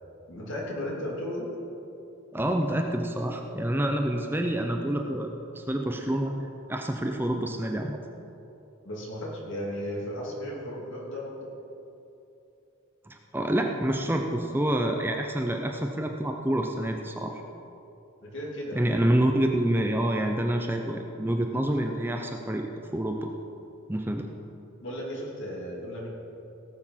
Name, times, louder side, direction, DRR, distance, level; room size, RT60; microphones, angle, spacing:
voice 1, 0.3-1.5 8.8-11.5 18.2-18.8 24.8-26.1, equal, 60° left, -3 dB, 2.9 m, -35 dB
voice 2, 2.3-6.3 6.7-8.0 13.1-17.4 18.7-22.7 22.9-23.3 23.9-24.3, right 1 dB, 10° right, 3 dB, 0.6 m, -27 dB
17.5 x 7.0 x 5.7 m, 2.9 s
head